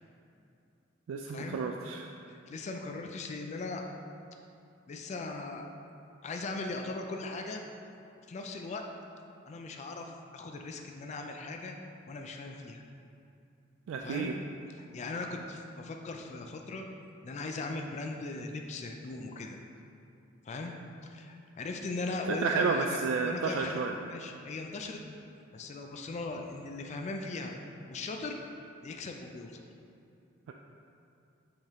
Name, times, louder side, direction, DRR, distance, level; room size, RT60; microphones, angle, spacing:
voice 1, 1.1-2.1 13.9-14.4 22.4-23.9, right 4 dB, 90° right, 2 dB, 0.3 m, -31 dB
voice 2, 2.3-3.8 4.9-5.6 6.2-7.6 8.3-8.8 9.5-11.8 12.1-12.8 14.0-14.3 14.8-16.9 17.2-19.6 20.5-20.8 21.0-25.0 25.5-27.6 27.9-28.4 28.8-29.6, left 3 dB, 35° left, 3 dB, 0.3 m, -39 dB
7.8 x 3.5 x 3.5 m, 2.6 s
head